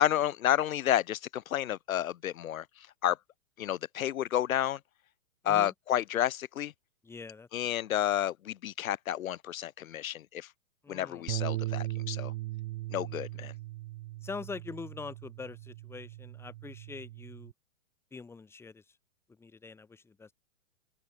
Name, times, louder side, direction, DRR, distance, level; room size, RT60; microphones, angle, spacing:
voice 1, 0.0-2.6 3.0-3.2 3.6-4.8 5.4-6.7 7.5-10.5 10.9-12.3 12.9-13.5, left 11 dB, 85° left, 1.0 m, -30 dB
voice 2, 7.0-7.7 10.8-11.3 14.2-17.5 18.1-18.8 19.4-20.3, left 4 dB, 5° left, 1.1 m, -44 dB
Bass guitar, 11.3-17.5, right 17 dB, 45° right, 0.6 m, -38 dB
open air
hypercardioid pair, 145°, 40 cm